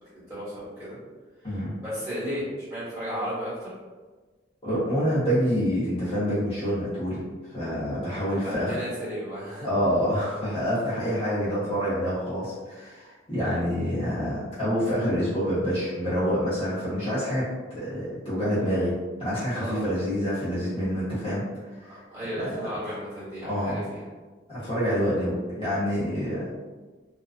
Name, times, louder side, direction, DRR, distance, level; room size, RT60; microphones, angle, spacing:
voice 1, 0.0-1.0 1.4-2.4 2.7-3.7 8.1-9.7 13.4-13.6 19.5-19.9 21.9-24.0, equal, 15° right, -11 dB, 1.2 m, -34 dB
voice 2, 4.6-7.2 7.5-8.8 9.6-17.4 17.7-21.4 21.8-22.0 22.4-22.6 23.5-23.8 24.5-26.5, equal, 30° left, -12 dB, 0.9 m, -27 dB
2.5 x 2.3 x 2.5 m, 1.3 s
head